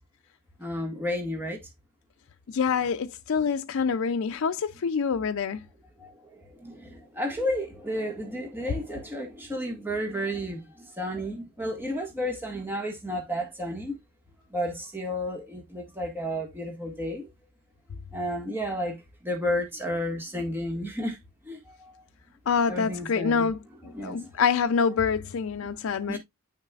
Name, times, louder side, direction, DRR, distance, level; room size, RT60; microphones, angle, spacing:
voice 1, 0.6-1.6 6.0-14.0 14.5-17.3 18.1-21.2 21.4-21.9 22.7-23.5 23.9-24.3 26.1-26.2, equal, 10° right, 1.6 m, -32 dB
voice 2, 2.5-5.6 22.5-23.6 23.8-26.2, left 6 dB, 65° left, 0.4 m, -26 dB
8.9 x 6.4 x 2.3 m
head